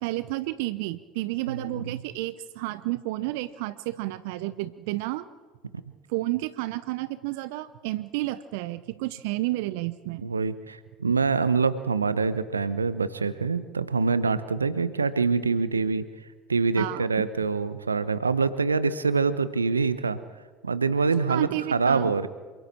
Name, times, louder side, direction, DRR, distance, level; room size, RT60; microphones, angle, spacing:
voice 1, 0.0-5.2 6.1-10.3 16.8-17.2 21.3-22.1, right 18 dB, 65° right, 14 dB, 0.7 m, -31 dB
voice 2, 1.5-2.0 10.2-16.0 16.5-20.2 20.6-22.3, right 4 dB, 85° right, 14 dB, 1.0 m, -25 dB
28.0 x 25.5 x 4.5 m, 1.5 s
figure-of-eight pair, 70°, 0 cm